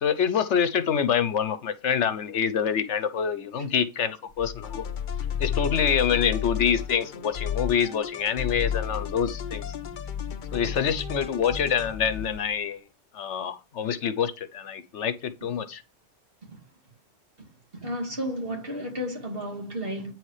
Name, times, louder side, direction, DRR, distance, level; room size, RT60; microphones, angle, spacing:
voice 1, 0.0-4.8 5.4-9.7 10.5-12.8 13.1-15.8, left 7 dB, 75° left, 1.1 m, -26 dB
sound 1, 4.3-7.0 7.3-7.8 8.2-12.5, left 8 dB, 20° left, 1.3 m, -32 dB
sound 2, 4.6-12.3, left 7 dB, 50° left, 0.8 m, -41 dB
voice 2, 17.7-20.1, equal, 50° right, 2.6 m, -32 dB
9.2 x 4.8 x 4.8 m
omnidirectional pair, 1.2 m